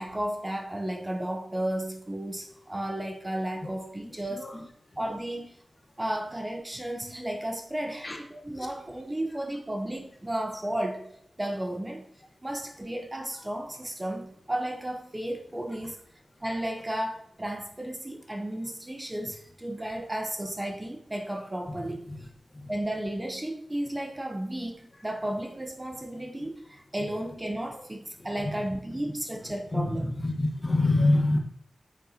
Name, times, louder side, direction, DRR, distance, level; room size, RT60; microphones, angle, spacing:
voice 1, 0.0-4.6 5.0-5.6 6.0-11.1 11.4-12.1 12.4-16.0 16.4-22.1 22.7-30.1, right 1 dB, 20° right, 0.8 m, -33 dB
voice 2, 29.7-31.4, left 2 dB, 30° left, 1.2 m, -25 dB
8.9 x 6.6 x 2.8 m
wide cardioid pair, 105°, 0 cm